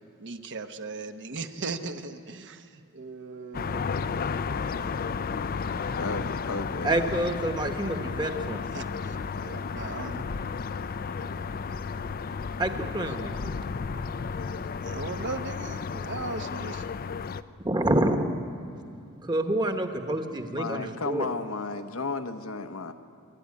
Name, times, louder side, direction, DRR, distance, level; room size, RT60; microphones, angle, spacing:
voice 1, 0.2-3.8 8.7-9.2 9.4-10.2 11.2-11.5 13.1-13.2 14.8-16.9, right 3 dB, 55° right, 7 dB, 1.0 m, -38 dB
sound 1, 3.5-17.4, left 5 dB, 40° left, 0.5 m, -33 dB
voice 2, 6.0-7.1 10.9-11.0 20.6-22.9, left 3 dB, 65° left, 7 dB, 1.0 m, -33 dB
voice 3, 6.8-8.6 12.6-13.5 17.6-18.3 19.2-21.3, right 1 dB, 20° right, 6 dB, 1.2 m, -27 dB
26.0 x 11.5 x 9.7 m, 2.5 s
head